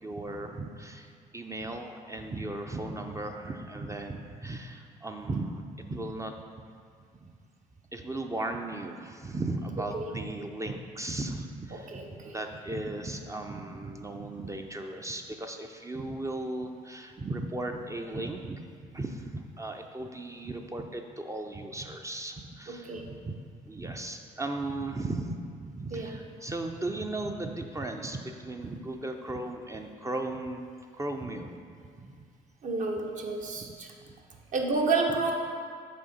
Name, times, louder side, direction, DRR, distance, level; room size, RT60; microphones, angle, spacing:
voice 1, 0.0-6.3 7.2-7.3 7.9-23.4 23.7-25.4 25.6-30.7 30.9-31.6 32.0-32.3 33.5-33.7, right 2 dB, 20° right, 4 dB, 0.5 m, -36 dB
voice 2, 11.7-12.3 22.7-23.1 25.9-26.1 32.6-33.9 34.5-35.3, right 3 dB, 50° right, 1 dB, 0.9 m, -30 dB
6.3 x 4.3 x 4.1 m, 2.2 s
supercardioid pair, 65°, 17 cm